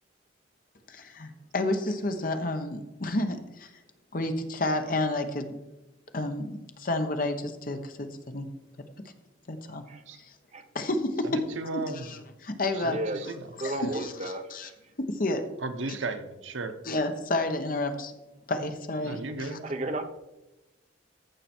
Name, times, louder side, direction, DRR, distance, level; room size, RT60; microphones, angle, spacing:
voice 1, 0.9-3.7 4.1-5.6 6.1-8.5 9.5-9.8 10.2-10.3 10.7-11.4 11.7-13.0 13.6-14.7 15.0-15.4 16.8-18.1 18.5-19.6, left 2 dB, 45° left, 7 dB, 1.0 m, -30 dB
voice 2, 11.2-12.1 12.7-13.4 13.8-14.0 15.6-16.8 19.0-19.6, right 3 dB, 85° right, 7 dB, 1.0 m, -35 dB
voice 3, 12.8-13.3 13.6-14.7 19.4-20.0, right 1 dB, 35° right, 7 dB, 0.8 m, -33 dB
14.5 x 5.9 x 4.4 m, 0.99 s
head